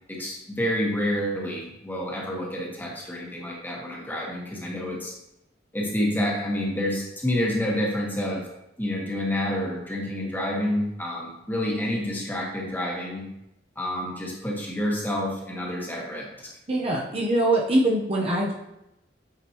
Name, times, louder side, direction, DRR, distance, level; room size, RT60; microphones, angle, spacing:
voice 1, 0.1-5.1 5.7-8.5 8.8-13.3 13.7-16.5, left 1 dB, 10° left, -3 dB, 1.4 m, -28 dB
voice 2, 16.7-18.5, right 1 dB, 35° right, -2 dB, 0.9 m, -23 dB
8.5 x 5.1 x 3.0 m, 0.87 s
head